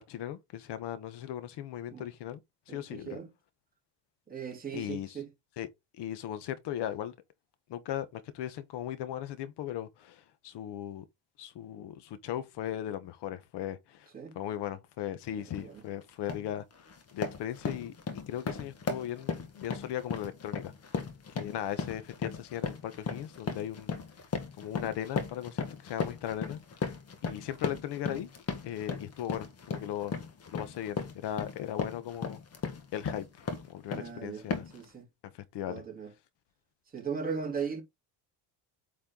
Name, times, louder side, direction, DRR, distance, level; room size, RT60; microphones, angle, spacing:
voice 1, 0.0-2.4 2.7-3.2 4.7-5.2 5.6-5.7 6.0-7.1 7.7-11.0 11.4-14.1 14.3-16.6 17.1-21.0 21.3-23.9 24.6-26.9 27.2-28.3 28.6-30.1 30.5-32.4 32.9-34.6 35.3-35.8, left 11 dB, 65° left, 1.2 m, -38 dB
voice 2, 2.7-3.3 4.3-5.3 14.1-14.4 15.3-15.8 33.9-34.4 34.7-35.1 35.7-36.1 36.9-37.8, right 6 dB, 20° right, 3.2 m, -38 dB
sound 1, 15.5-15.7 16.1-16.5 16.9-34.1 34.5-34.9, left 5 dB, 35° left, 1.6 m, -36 dB
8.7 x 4.4 x 3.8 m
cardioid pair, 160°, 44 cm